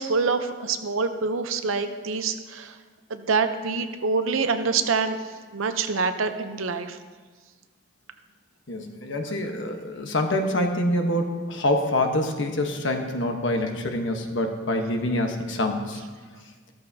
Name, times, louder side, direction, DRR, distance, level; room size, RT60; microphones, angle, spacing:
voice 1, 0.0-2.7 3.1-5.2 5.5-7.0, right 4 dB, 80° right, 8 dB, 0.8 m, -26 dB
voice 2, 8.7-16.0, left 1 dB, 65° left, 4 dB, 1.2 m, -26 dB
14.0 x 13.5 x 2.8 m, 1.4 s
head